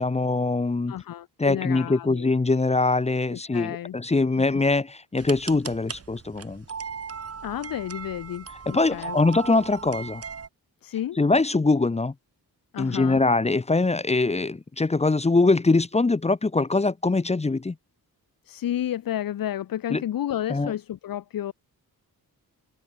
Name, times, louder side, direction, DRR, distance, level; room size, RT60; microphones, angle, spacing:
voice 1, 0.0-0.9 1.4-6.6 8.7-10.2 11.2-12.1 12.8-17.8 19.9-20.0 20.5-20.7, left 3 dB, 15° left, 0.8 m, -23 dB
voice 2, 0.9-2.3 3.5-3.9 7.4-9.2 10.8-11.2 12.7-13.2 18.4-21.5, left 11 dB, 65° left, 0.7 m, -31 dB
sound 1, 5.2-10.5, right 6 dB, 40° right, 2.4 m, -38 dB
open air
wide cardioid pair, 165°, 37 cm